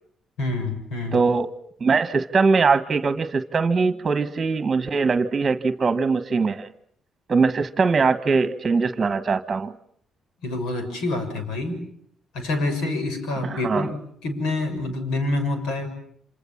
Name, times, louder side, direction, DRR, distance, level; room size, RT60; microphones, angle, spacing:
voice 1, 0.4-1.2 10.4-11.8 12.3-15.9, left 2 dB, 90° left, 9 dB, 6.9 m, -27 dB
voice 2, 1.1-1.5 1.8-6.7 7.3-9.7 13.5-13.9, right 4 dB, 35° right, 10 dB, 1.5 m, -21 dB
28.0 x 27.0 x 7.3 m, 0.65 s
cardioid pair, 90°, 0 cm